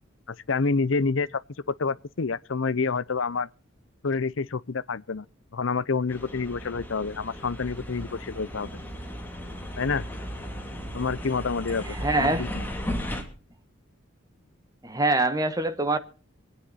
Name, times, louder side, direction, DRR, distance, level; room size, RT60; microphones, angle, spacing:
voice 1, 0.3-1.4 1.7-3.5 4.0-5.3 5.5-8.7 9.8-10.1 10.9-12.6, left 4 dB, 70° left, 0.7 m, -28 dB
sound 1, 6.1-13.2, equal, 10° left, 2.9 m, -36 dB
voice 2, 11.9-12.5 14.8-16.0, right 2 dB, 15° right, 1.3 m, -24 dB
26.0 x 9.8 x 4.2 m
head